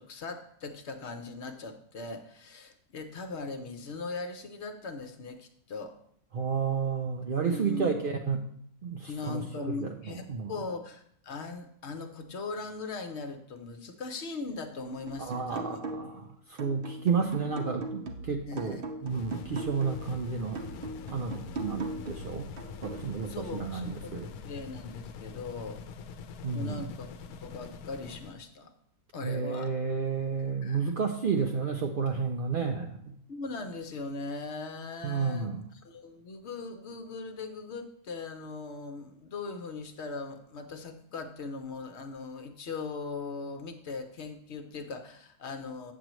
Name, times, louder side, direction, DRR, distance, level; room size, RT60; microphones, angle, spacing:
voice 1, 0.0-6.0 7.4-7.9 9.1-15.9 18.5-18.9 23.3-25.8 26.5-28.7 29.1-29.7 30.6-30.9 33.3-35.5 35.8-45.9, left 4 dB, 55° left, 7 dB, 0.9 m, -39 dB
voice 2, 6.3-8.4 8.8-9.4 9.8-10.5 15.2-16.2 16.5-20.6 21.1-22.5 22.8-24.3 26.4-26.8 29.2-33.1 35.0-35.6, right 5 dB, 85° right, 3 dB, 0.4 m, -31 dB
sound 1, 15.1-16.2 16.6-20.1 20.6-23.1, right 2 dB, 50° right, 0.8 m, -40 dB
sound 2, 19.0-28.4, left 6 dB, 75° left, 1.0 m, -44 dB
8.1 x 7.7 x 3.0 m, 0.65 s
omnidirectional pair, 1.6 m